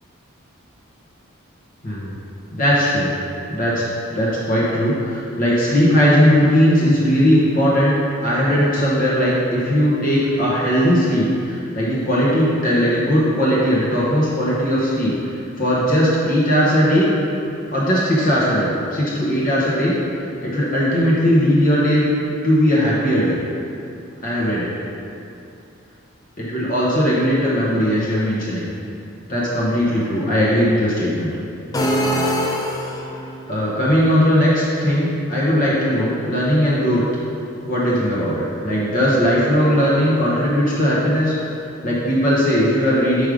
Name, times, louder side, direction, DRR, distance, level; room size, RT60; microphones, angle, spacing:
voice 1, 2.5-3.1 3.5-3.8 4.1-7.9 8.2-17.1 17.7-19.9 20.4-22.0 22.4-23.4 24.2-24.7 26.4-28.7 29.3-31.3 33.5-37.0 37.6-41.3 41.8-43.3, equal, 40° left, -7 dB, 1.1 m, -18 dB
sound 1, 31.7-33.3, equal, 15° left, 0.5 m, -22 dB
5.3 x 5.0 x 5.1 m, 2.6 s
head